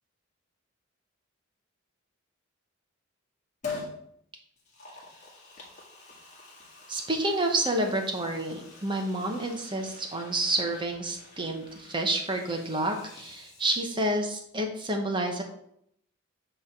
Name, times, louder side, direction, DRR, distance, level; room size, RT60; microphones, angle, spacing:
Liquid, 3.6-4.0 4.6-14.2 14.5-14.6, left 4 dB, 35° left, 1.8 m, -45 dB
voice 1, 6.9-15.4, right 1 dB, 20° right, 3 dB, 1.0 m, -29 dB
8.4 x 3.4 x 5.9 m, 0.72 s
head